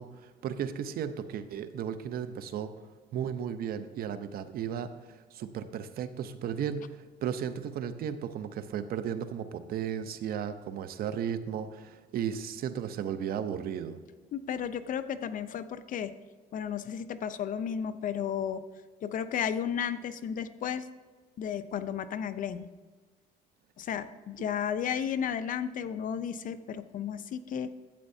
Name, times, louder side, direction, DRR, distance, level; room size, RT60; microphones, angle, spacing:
voice 1, 0.0-2.7 3.1-4.9 5.3-14.0, right 8 dB, 60° right, 11 dB, 0.7 m, -35 dB
voice 2, 14.3-16.1 16.5-18.6 19.0-20.9 21.4-22.7 23.8-27.7, left 8 dB, 50° left, 12 dB, 0.6 m, -33 dB
12.0 x 8.7 x 2.7 m, 1.4 s
cardioid pair, 110°, 17 cm